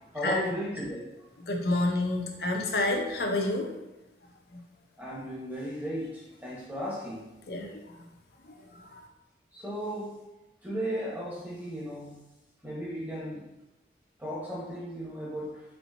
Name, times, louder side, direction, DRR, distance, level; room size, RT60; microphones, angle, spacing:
voice 1, 0.1-1.0 5.0-7.2 9.5-10.2 10.6-12.2 12.6-13.5 14.2-15.5, equal, 10° right, -6 dB, 1.2 m, -35 dB
voice 2, 1.4-3.7 4.5-4.6 7.5-7.8 8.5-9.0, left 2 dB, 60° left, 2 dB, 0.7 m, -29 dB
4.4 x 4.0 x 2.7 m, 1.0 s
head